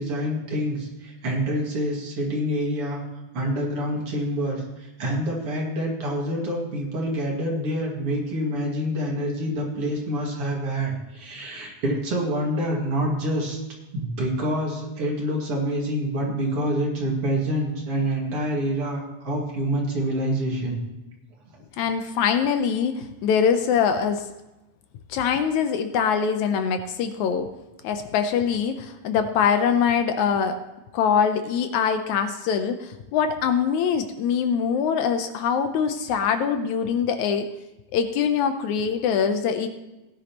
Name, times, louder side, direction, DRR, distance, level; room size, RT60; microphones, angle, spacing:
voice 1, 0.0-3.0 3.3-13.6 13.9-20.8, equal, 50° right, -1 dB, 2.7 m, -27 dB
voice 2, 21.8-24.2 25.1-27.5 27.8-30.6 30.9-37.5 37.9-39.7, left 7 dB, 75° left, 8 dB, 2.0 m, -23 dB
17.5 x 10.5 x 2.9 m, 1.0 s
omnidirectional pair, 3.6 m